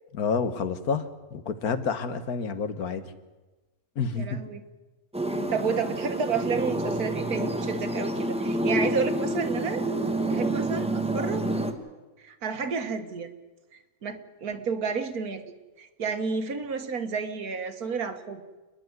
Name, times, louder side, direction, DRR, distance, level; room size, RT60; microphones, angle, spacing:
voice 1, 0.1-1.1 1.3-3.0 4.0-4.4, left 5 dB, 85° left, 11 dB, 1.8 m, -28 dB
voice 2, 4.2-4.6 5.5-9.8 10.3-11.5 12.2-13.3 13.7-15.4 15.8-18.4, right 5 dB, 90° right, 8 dB, 1.9 m, -31 dB
sound 1, 5.1-11.7, right 1 dB, 5° right, 1.3 m, -28 dB
29.0 x 10.5 x 9.6 m, 1.2 s
omnidirectional pair, 1.5 m